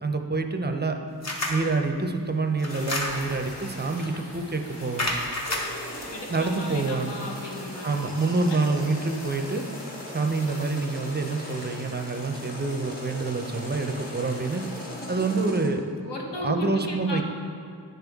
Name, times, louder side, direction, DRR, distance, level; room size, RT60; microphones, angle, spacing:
voice 1, 0.0-1.0 1.5-5.1 6.3-7.2 7.8-9.6 10.1-14.6 15.1-15.8 16.4-17.2, right 3 dB, 25° right, 4 dB, 0.5 m, -27 dB
sound 1, 1.2-1.7 2.6-3.4 4.0-4.2 5.0-6.1, left 1 dB, 40° left, 1.0 m, -30 dB
Fire, 2.7-15.5, left 1 dB, 55° left, 1.6 m, -43 dB
sound 2, 5.4-15.7, equal, 20° left, 1.4 m, -41 dB
voice 2, 6.1-8.7 16.0-17.2, left 1 dB, 75° left, -1 dB, 1.2 m, -36 dB
9.9 x 5.4 x 3.5 m, 2.5 s
wide cardioid pair, 90°, 43 cm